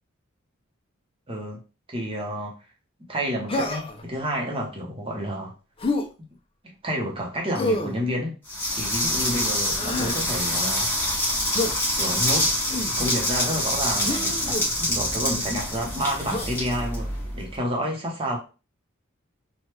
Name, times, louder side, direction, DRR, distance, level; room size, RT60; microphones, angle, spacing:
voice 1, 1.3-1.6 1.9-2.6 3.1-5.5 6.6-8.3 8.7-10.9 12.0-12.5 13.0-18.4, equal, 25° right, 0.8 m, -29 dB
Human voice, 3.5-4.0 5.8-6.1 7.5-8.0 9.6-10.2 11.5-11.8 12.7-13.0 14.0-14.6 16.3-16.5, left 2 dB, 25° left, 0.4 m, -28 dB
sound 1, 8.5-17.5, left 1 dB, 10° left, 1.1 m, -26 dB
3.3 x 2.2 x 3.0 m
head